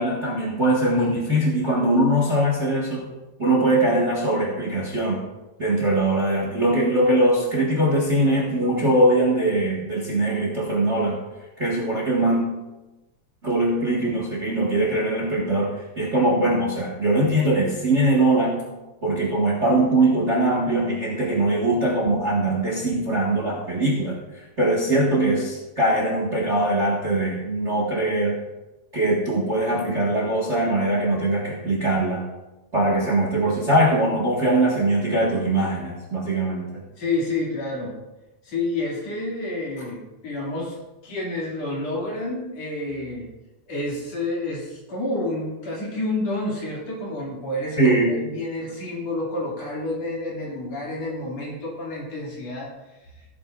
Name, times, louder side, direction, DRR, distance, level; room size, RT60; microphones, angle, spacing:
voice 1, 0.0-3.0 3.4-5.2 5.6-11.2 11.6-12.4 13.4-18.6 19.0-24.1 24.6-28.3 28.9-32.2 32.7-36.8 47.8-48.1, right 1 dB, 30° right, -3 dB, 1.6 m, -21 dB
voice 2, 37.0-38.0 38.4-40.8 41.0-43.3 43.7-52.7, left 2 dB, 60° left, -4 dB, 3.7 m, -29 dB
16.5 x 8.8 x 2.5 m, 1.1 s
omnidirectional pair, 3.4 m